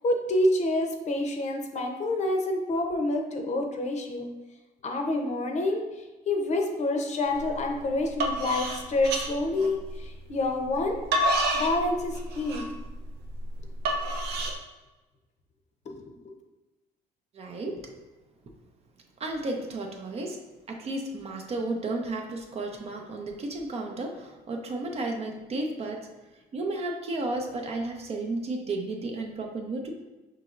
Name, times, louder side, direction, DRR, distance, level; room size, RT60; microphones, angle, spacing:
voice 1, 0.0-4.3 4.8-5.8 6.3-11.0 11.5-12.7 15.9-16.4, left 2 dB, 45° left, 3 dB, 0.7 m, -28 dB
sound 1, 7.4-7.6 8.0-10.1 10.7-14.6, right 1 dB, 80° right, 0.7 m, -28 dB
voice 2, 17.3-18.0 19.2-20.4 20.7-26.1 26.5-29.9, right 2 dB, 40° right, 2 dB, 0.6 m, -33 dB
5.5 x 2.9 x 2.5 m, 1.1 s
cardioid pair, 110°, 17 cm